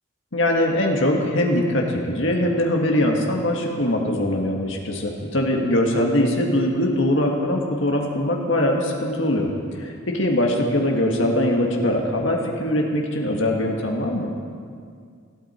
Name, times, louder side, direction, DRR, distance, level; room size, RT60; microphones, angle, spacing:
voice 1, 0.3-9.5 9.8-14.3, left 1 dB, 70° left, 0 dB, 1.9 m, -22 dB
20.5 x 14.0 x 4.5 m, 2.1 s
head